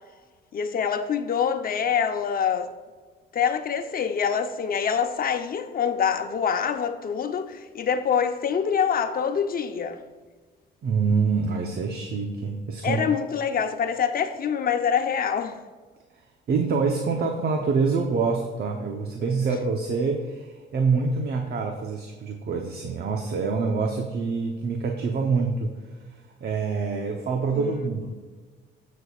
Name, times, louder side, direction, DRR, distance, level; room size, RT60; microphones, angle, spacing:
voice 1, 0.5-2.7 3.3-10.0 12.8-15.6 27.5-27.9, left 7 dB, 45° left, 0.9 m, -25 dB
voice 2, 10.8-13.0 16.5-25.7 26.4-28.1, right 4 dB, 55° right, 1.0 m, -26 dB
17.0 x 6.5 x 2.5 m
cardioid pair, 100°, 20 cm